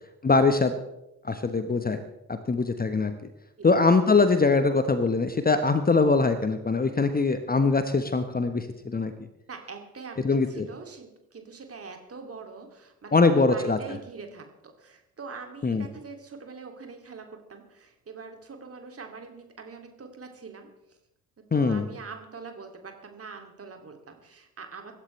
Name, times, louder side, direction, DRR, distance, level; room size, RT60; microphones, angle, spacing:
voice 1, 0.2-0.8 1.2-2.0 2.3-3.1 3.6-9.1 10.2-10.7 13.1-13.8 15.6-15.8 21.5-21.9, left 4 dB, 20° left, 9 dB, 1.2 m, -22 dB
voice 2, 9.5-21.0 21.5-24.9, right 4 dB, 30° right, 4 dB, 2.7 m, -43 dB
24.0 x 12.0 x 3.3 m, 0.88 s
figure-of-eight pair, 45°, 44 cm